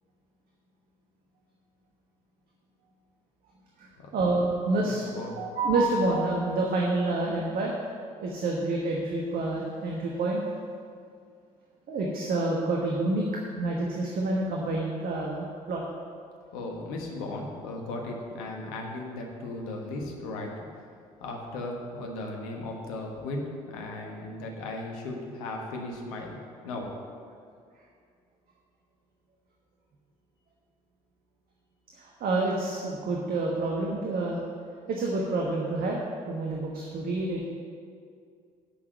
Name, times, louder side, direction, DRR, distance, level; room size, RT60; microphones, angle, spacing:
voice 1, 3.8-7.8 8.2-10.4 11.9-13.2 13.5-15.8 31.9-34.4 34.9-37.5, right 2 dB, 50° right, -1 dB, 1.2 m, -28 dB
voice 2, 4.8-5.4 16.5-20.5 21.2-26.9, left 2 dB, 70° left, 1 dB, 1.3 m, -36 dB
8.4 x 6.0 x 7.8 m, 2.3 s
figure-of-eight pair, 50°, 19 cm